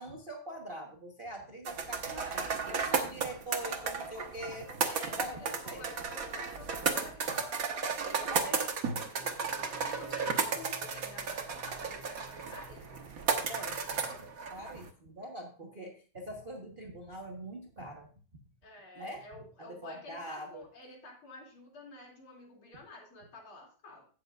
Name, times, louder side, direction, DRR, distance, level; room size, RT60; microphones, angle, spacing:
voice 1, 0.0-5.9 8.3-8.7 13.5-13.8 14.5-18.1 18.9-19.3 19.6-20.6, right 1 dB, 30° right, 0 dB, 1.1 m, -43 dB
sound 1, 1.7-14.9, right 5 dB, 50° right, 1.4 m, -34 dB
voice 2, 1.9-2.6 4.8-8.4 9.1-13.1 13.5-14.3 18.6-24.1, left 2 dB, 90° left, 0 dB, 3.5 m, -51 dB
Singing, 9.2-14.1, right 1 dB, 10° left, 1.3 m, -54 dB
16.5 x 6.7 x 2.4 m, 0.39 s
omnidirectional pair, 2.3 m